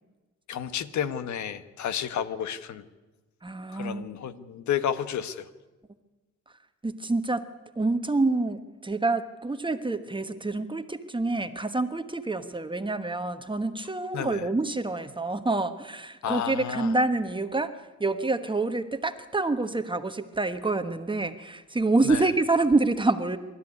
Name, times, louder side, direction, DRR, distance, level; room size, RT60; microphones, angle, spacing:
voice 1, 0.5-2.8 3.7-5.5 14.1-14.5 16.2-16.9 22.0-22.3, left 9 dB, 70° left, 12 dB, 1.4 m, -31 dB
voice 2, 3.4-4.1 6.8-7.4 7.7-17.7 18.0-23.4, right 3 dB, 15° right, 8 dB, 1.2 m, -27 dB
25.5 x 13.0 x 9.8 m, 1.2 s
cardioid pair, 90°, 30 cm